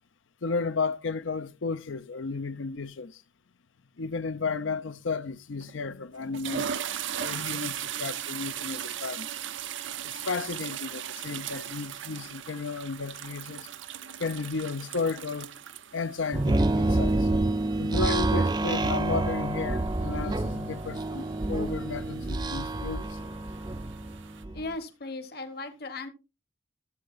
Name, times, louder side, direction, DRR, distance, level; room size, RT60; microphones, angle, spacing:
voice 1, 0.4-3.2 4.0-6.8 7.1-9.3 10.0-13.7 14.2-15.5 15.9-17.3 17.8-23.2, left 4 dB, 85° left, 0.7 m, -33 dB
sound 1, 5.6-5.8 6.2-24.4, right 9 dB, 80° right, 0.6 m, -39 dB
sound 2, 16.3-24.7, right 2 dB, 20° right, 0.4 m, -28 dB
voice 2, 24.5-26.1, left 3 dB, 55° left, 1.2 m, -37 dB
13.5 x 7.8 x 2.5 m
head